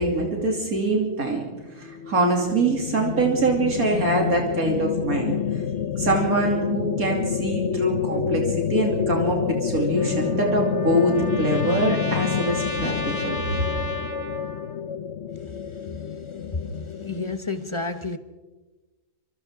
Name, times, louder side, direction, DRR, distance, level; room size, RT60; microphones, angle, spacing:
voice 1, 0.0-1.4 1.8-5.6 6.0-13.3, right 2 dB, 80° right, 3.3 m, -24 dB
sound 1, 1.5-17.4, left 7 dB, 55° left, 1.1 m, -28 dB
Trumpet, 10.0-14.8, left 1 dB, 80° left, 2.3 m, -34 dB
voice 2, 15.8-16.2 16.5-18.2, left 3 dB, 25° left, 0.9 m, -31 dB
28.0 x 26.5 x 3.7 m
omnidirectional pair, 1.5 m